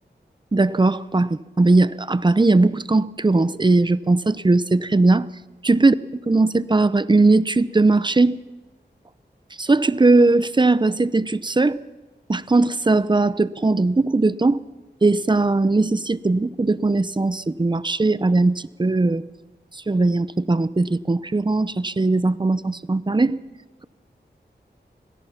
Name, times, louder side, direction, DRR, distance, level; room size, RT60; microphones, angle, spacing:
voice 1, 0.5-5.3 5.6-5.9 6.3-8.4 9.6-11.8 12.3-14.6 15.0-19.2 19.7-23.4, right 3 dB, 25° right, 16 dB, 0.7 m, -19 dB
25.5 x 18.0 x 5.8 m, 1.2 s
wide cardioid pair, 70°, 18 cm